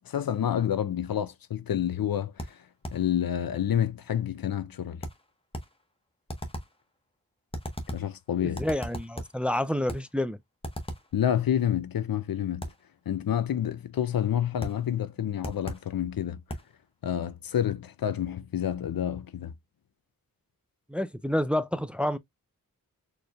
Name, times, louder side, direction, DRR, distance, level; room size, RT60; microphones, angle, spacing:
voice 1, 0.1-2.3 2.9-5.0 7.9-8.6 11.1-12.7 13.1-16.4 17.0-19.5, left 10 dB, 80° left, 0.5 m, -28 dB
sound 1, 2.4-3.1 5.0-5.8 6.3-6.8 7.5-8.2 8.6-9.4 9.9-10.2 10.6-11.2 12.6-12.9 14.6-14.9 15.4-15.9 16.5-16.8, equal, 15° left, 1.1 m, -38 dB
voice 2, 8.4-10.4 20.9-22.2, left 1 dB, 5° right, 0.4 m, -29 dB
4.3 x 3.2 x 2.3 m
wide cardioid pair, 70°, 35 cm